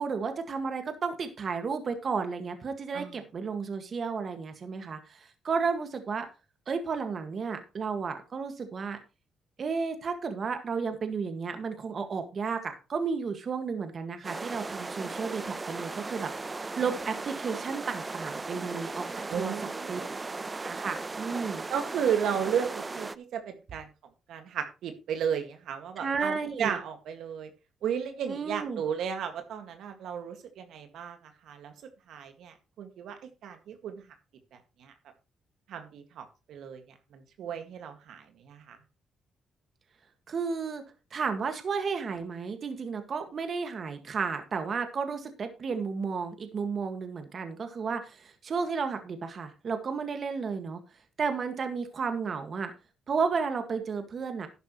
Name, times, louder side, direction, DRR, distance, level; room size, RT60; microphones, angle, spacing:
voice 1, 0.0-6.3 6.7-9.0 9.6-19.1 19.4-19.5 19.9-20.0 20.6-21.6 26.0-26.8 28.3-28.8 40.3-40.8 41.1-50.8 51.2-52.7 53.1-54.5, right 5 dB, 50° right, 7 dB, 1.9 m, -32 dB
sound 1, 14.2-23.1, right 3 dB, 25° right, 0.7 m, -37 dB
voice 2, 19.3-20.3 21.7-23.9 24.3-27.5 27.8-31.2 31.4-31.7 32.1-34.0 34.5-34.9 35.7-36.8 37.1-38.8, right 8 dB, 75° right, 6 dB, 2.0 m, -34 dB
12.0 x 10.0 x 3.2 m, 0.29 s
cardioid pair, 90°, 0 cm